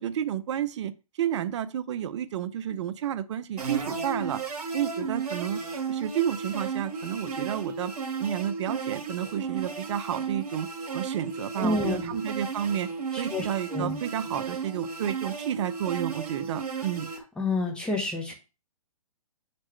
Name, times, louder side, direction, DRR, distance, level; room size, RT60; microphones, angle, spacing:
voice 1, 0.0-4.4 4.7-5.6 5.9-7.9 8.2-10.7 10.9-12.9 13.2-17.1, right 10 dB, 50° right, 0.6 m, -31 dB
sound 1, 3.6-17.2, right 5 dB, 90° right, 1.5 m, -34 dB
voice 2, 11.6-12.1 13.3-13.4 13.7-14.0 17.4-18.3, left 3 dB, 5° left, 1.3 m, -28 dB
7.2 x 4.2 x 3.2 m
hypercardioid pair, 140°, 19 cm